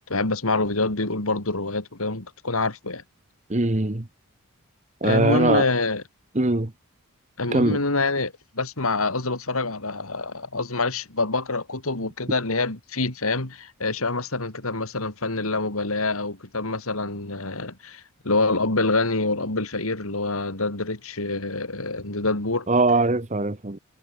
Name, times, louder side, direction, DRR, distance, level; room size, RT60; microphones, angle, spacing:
voice 1, 0.1-3.0 5.0-6.0 7.4-22.7, left 3 dB, 80° left, 3.2 m, -26 dB
voice 2, 3.5-4.1 5.0-5.7 6.3-6.7 7.5-7.8 22.7-23.8, right 2 dB, 35° right, 1.2 m, -21 dB
head